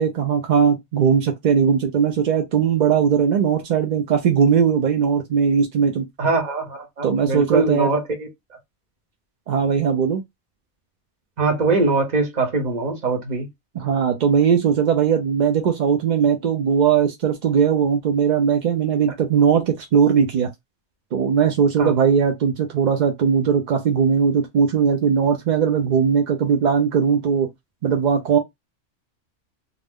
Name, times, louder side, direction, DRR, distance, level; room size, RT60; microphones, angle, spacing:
voice 1, 0.0-6.1 7.0-7.9 9.5-10.2 13.8-20.5 21.1-27.5 27.8-28.4, right 7 dB, 55° right, 0.5 m, -19 dB
voice 2, 6.2-8.3 11.4-13.5 21.8-21.9, right 3 dB, 40° right, 0.8 m, -22 dB
2.4 x 2.0 x 3.5 m
omnidirectional pair, 1.2 m